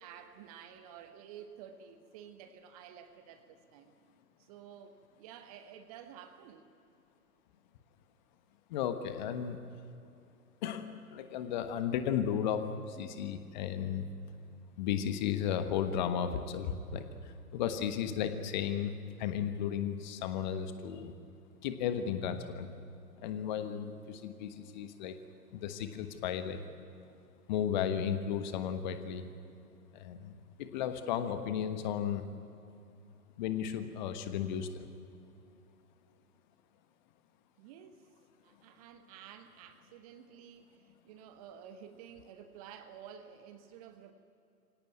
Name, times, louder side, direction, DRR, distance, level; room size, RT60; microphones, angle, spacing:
voice 1, 0.0-3.9 4.4-6.7 10.0-10.1 37.6-38.1 38.4-44.1, right 8 dB, 25° right, 9 dB, 1.0 m, -52 dB
voice 2, 8.7-9.6 10.6-14.0 14.8-18.9 19.2-21.1 21.6-22.7 23.2-25.1 25.5-26.6 27.5-29.2 29.9-32.2 33.4-34.9, left 8 dB, 30° left, 9 dB, 1.3 m, -34 dB
24.5 x 17.5 x 9.4 m, 2.6 s
figure-of-eight pair, 120°, 46 cm